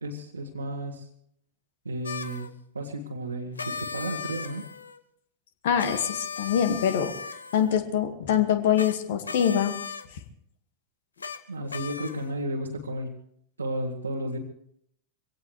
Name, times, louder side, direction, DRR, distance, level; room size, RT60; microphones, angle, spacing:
voice 1, 0.0-1.1 1.8-4.7 11.5-13.1 13.6-14.4, right 1 dB, 80° right, -3 dB, 1.7 m, -33 dB
sound 1, 2.0-2.5 3.6-5.0 5.8-7.8 8.7-8.9 9.2-10.1 11.2-11.4 11.7-12.3, left 6 dB, 75° left, 1.0 m, -37 dB
voice 2, 5.6-7.1 7.5-9.7, left 9 dB, 55° left, 8 dB, 2.0 m, -24 dB
24.0 x 17.5 x 3.4 m, 0.70 s
figure-of-eight pair, 90°, 0 cm